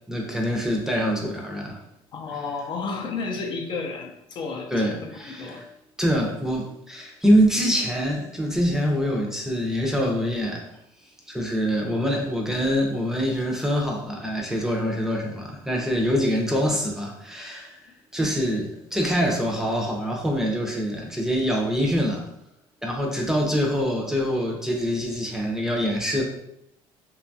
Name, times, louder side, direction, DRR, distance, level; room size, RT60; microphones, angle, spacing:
voice 1, 0.1-1.8 4.7-5.7 6.0-10.7 11.3-17.8 18.1-22.2 22.8-26.2, equal, 5° right, 0 dB, 0.5 m, -25 dB
voice 2, 2.1-5.7 18.2-18.3, left 4 dB, 50° left, 2 dB, 0.4 m, -32 dB
2.7 x 2.3 x 2.6 m, 0.78 s
cardioid pair, 105°, 11 cm